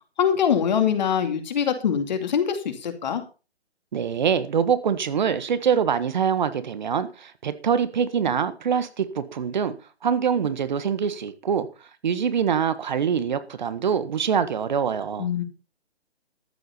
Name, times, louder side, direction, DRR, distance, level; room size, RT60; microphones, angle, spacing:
voice 1, 0.2-3.2 15.2-15.4, left 8 dB, 45° left, 2.5 m, -23 dB
voice 2, 3.9-9.7 10.0-15.3, right 7 dB, 45° right, 1.5 m, -24 dB
14.0 x 8.0 x 5.6 m
figure-of-eight pair, 145°, 32 cm